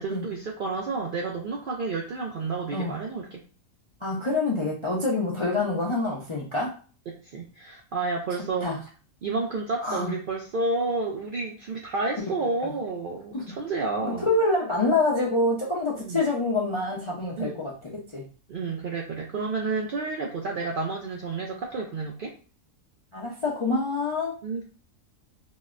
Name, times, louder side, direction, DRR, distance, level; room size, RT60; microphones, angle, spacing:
voice 1, 0.0-3.4 7.1-8.7 9.2-14.3 16.0-16.2 17.4-17.6 18.5-22.3 24.4-24.6, right 3 dB, 70° right, -1 dB, 0.5 m, -30 dB
voice 2, 4.0-6.8 8.6-8.8 9.8-10.1 13.3-13.4 14.0-18.3 23.1-24.3, left 2 dB, 40° left, -4 dB, 0.4 m, -26 dB
3.9 x 2.0 x 2.4 m, 0.37 s
omnidirectional pair, 1.4 m